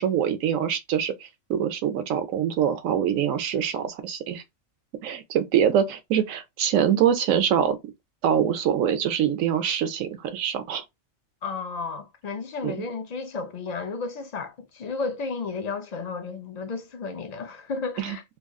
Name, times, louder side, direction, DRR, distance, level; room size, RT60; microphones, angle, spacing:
voice 1, 0.0-4.4 5.0-7.8 8.2-10.8 12.6-12.7 18.0-18.2, right 9 dB, 75° right, 1.1 m, -24 dB
voice 2, 11.4-18.2, left 4 dB, 60° left, 0.4 m, -33 dB
3.1 x 2.3 x 3.6 m
omnidirectional pair, 1.4 m